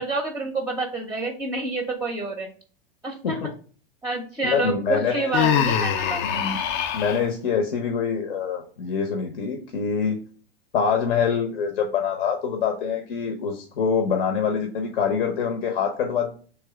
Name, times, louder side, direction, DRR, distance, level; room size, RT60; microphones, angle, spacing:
voice 1, 0.0-2.5 3.0-3.5 4.0-6.2, right 2 dB, 10° right, 4 dB, 0.6 m, -28 dB
voice 2, 4.4-5.3 6.2-6.6 6.9-10.2 10.7-16.3, left 6 dB, 70° left, 5 dB, 0.9 m, -25 dB
Human voice, 5.3-7.2, left 8 dB, 35° left, 0.5 m, -23 dB
3.4 x 3.0 x 4.7 m, 0.42 s
hypercardioid pair, 105°, 30 cm